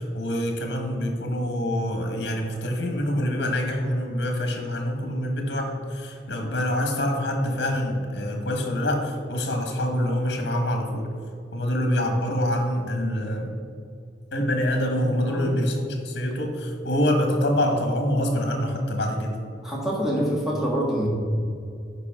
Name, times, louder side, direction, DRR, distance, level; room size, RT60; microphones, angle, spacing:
voice 1, 0.0-11.1 11.5-13.5 14.3-19.3, left 1 dB, 75° left, 3 dB, 1.3 m, -25 dB
voice 2, 15.3-15.6 19.6-21.1, equal, ahead, -5 dB, 1.9 m, -26 dB
9.8 x 4.8 x 3.7 m, 2.4 s
head